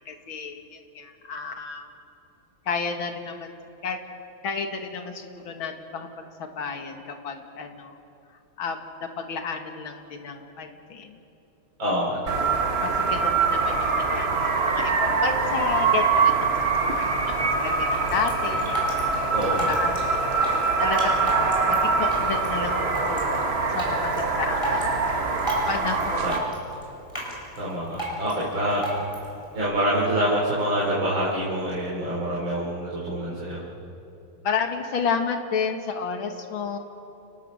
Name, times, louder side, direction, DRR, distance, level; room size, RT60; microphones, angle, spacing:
voice 1, 0.1-1.9 2.7-3.5 3.8-4.0 4.4-6.1 6.4-8.0 8.6-11.2 12.4-16.4 16.9-18.8 19.5-20.2 20.8-24.8 25.7-26.3 34.4-36.8, left 5 dB, 75° left, 5 dB, 2.5 m, -31 dB
voice 2, 11.8-12.5 19.3-19.7 26.2-26.4 27.6-28.8 29.5-33.6, equal, 70° right, -6 dB, 4.4 m, -26 dB
sound 1, 12.3-26.4, right 4 dB, 35° right, 1.4 m, -24 dB
Drip, 17.6-29.6, right 1 dB, 10° left, 5.9 m, -35 dB
29.5 x 20.0 x 6.4 m, 2.9 s
omnidirectional pair, 2.2 m